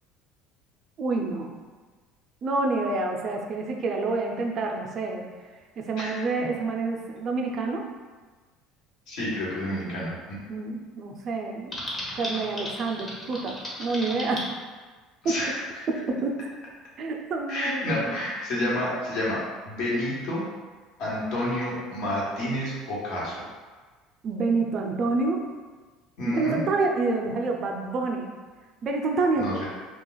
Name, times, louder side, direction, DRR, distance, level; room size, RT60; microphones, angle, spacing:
voice 1, 1.0-1.5 2.4-5.3 5.8-7.8 10.5-11.7 12.2-14.5 15.2-15.4 15.9-16.4 17.0-18.2 24.2-25.4 26.2-28.3 28.8-29.5, right 3 dB, 45° right, 2 dB, 0.5 m, -28 dB
voice 2, 9.1-10.4 15.2-15.5 17.5-19.4 19.7-20.4 21.0-23.3 26.2-26.6 29.4-29.6, left 1 dB, 65° left, -6 dB, 1.1 m, -29 dB
Typing, 11.7-14.5, left 1 dB, 20° left, 0.8 m, -35 dB
2.4 x 2.3 x 3.8 m, 1.4 s
supercardioid pair, 105°, 0 cm